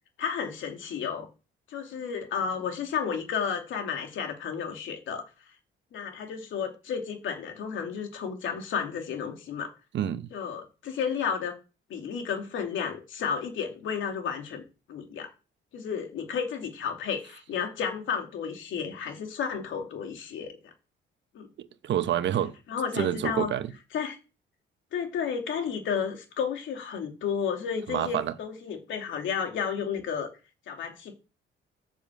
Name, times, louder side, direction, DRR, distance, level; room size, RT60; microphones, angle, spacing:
voice 1, 0.2-1.3 1.7-5.2 5.9-9.7 10.3-11.5 11.9-14.6 14.9-15.3 15.7-20.6 21.3-21.5 22.7-23.5 23.9-24.2 24.9-30.3 30.7-31.1, left 7 dB, 75° left, 2.6 m, -32 dB
voice 2, 9.9-10.3 21.6-22.5 22.9-23.7 27.9-28.3, right 10 dB, 65° right, 1.0 m, -28 dB
7.3 x 7.0 x 7.4 m
cardioid pair, 90°, 20 cm